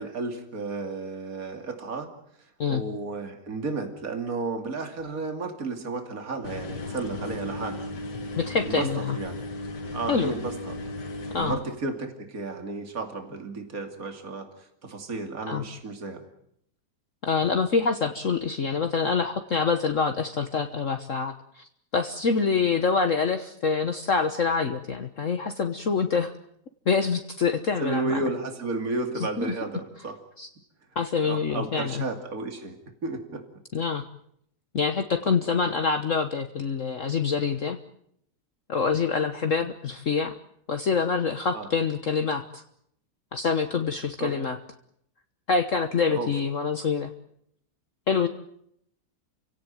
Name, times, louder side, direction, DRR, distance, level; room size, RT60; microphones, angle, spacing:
voice 1, 0.0-2.1 2.7-7.9 8.7-9.4 9.9-10.8 11.4-16.2 27.8-30.2 31.2-32.8 33.0-33.4 41.5-41.7 44.2-44.3 46.1-46.3, right 3 dB, 55° right, 5 dB, 3.1 m, -33 dB
sound 1, 6.4-11.5, left 2 dB, 75° left, 2.6 m, -35 dB
voice 2, 8.4-9.2 10.1-10.3 11.3-11.6 15.5-15.6 17.3-26.3 26.9-28.2 29.4-29.5 30.4-30.5 30.9-32.0 33.7-34.0 34.7-37.8 38.7-40.3 40.7-42.6 43.3-44.6 45.5-47.1 48.1-48.3, left 5 dB, 50° left, 7 dB, 1.5 m, -26 dB
29.5 x 17.0 x 9.1 m, 0.73 s
omnidirectional pair, 1.9 m